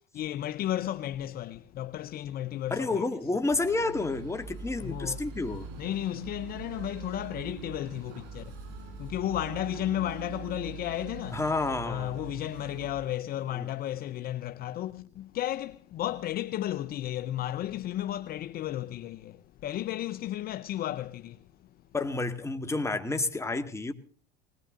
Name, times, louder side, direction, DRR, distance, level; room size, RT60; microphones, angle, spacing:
voice 1, 0.2-3.0 4.8-5.3 5.8-8.6 9.0-11.4 11.8-21.7, left 13 dB, 45° left, 0.7 m, -33 dB
voice 2, 2.7-5.7 11.3-12.2 13.6-13.7 21.9-23.9, left 3 dB, 15° left, 1.9 m, -30 dB
sound 1, 3.5-13.0, right 5 dB, 80° right, 4.3 m, -43 dB
20.5 x 18.0 x 3.9 m
supercardioid pair, 95°, 21 cm